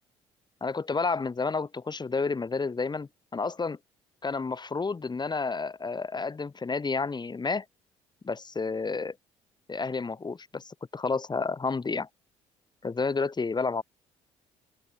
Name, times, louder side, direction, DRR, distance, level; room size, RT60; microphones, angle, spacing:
voice 1, 0.6-3.8 4.2-7.6 8.2-9.1 9.7-12.1 12.8-13.8, left 4 dB, 30° left, 6.3 m, -30 dB
hypercardioid pair, 55°, 14 cm